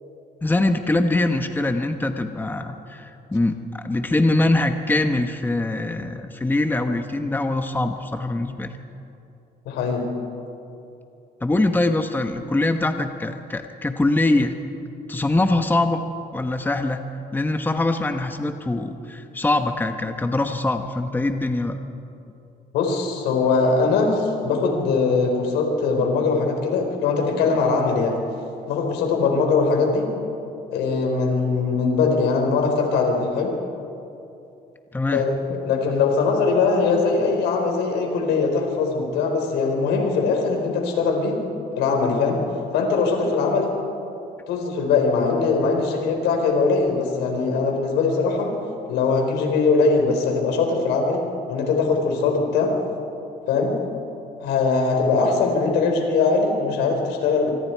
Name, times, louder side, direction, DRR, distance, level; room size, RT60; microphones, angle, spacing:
voice 1, 0.4-8.7 11.4-14.6 15.1-16.0 16.3-17.0 17.3-21.8 34.9-35.3, left 2 dB, 10° left, 6 dB, 1.2 m, -23 dB
voice 2, 9.6-10.1 22.7-28.2 28.7-30.1 30.7-33.5 35.1-41.4 41.8-42.4 42.7-43.7 44.5-48.5 48.9-51.2 51.5-52.7 53.5-53.8 54.4-57.5, left 4 dB, 85° left, 2 dB, 4.6 m, -21 dB
25.0 x 24.5 x 4.7 m, 2.7 s
cardioid pair, 110°, 17 cm